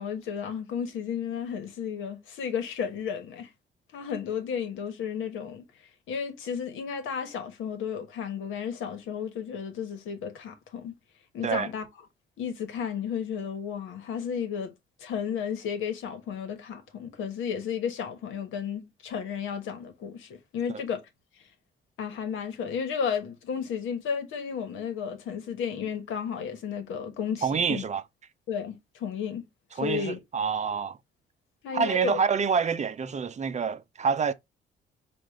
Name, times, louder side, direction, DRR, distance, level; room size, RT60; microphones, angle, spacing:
voice 1, 0.0-3.5 3.9-5.6 6.1-10.9 11.3-11.9 12.4-14.7 15.0-21.0 22.0-27.8 28.5-29.5 29.8-30.2 31.6-32.2, left 7 dB, 85° left, 1.2 m, -33 dB
voice 2, 27.4-28.0 29.8-31.0 31.7-34.3, right 6 dB, 35° right, 0.5 m, -27 dB
4.8 x 2.5 x 3.5 m
cardioid pair, 90°, 20 cm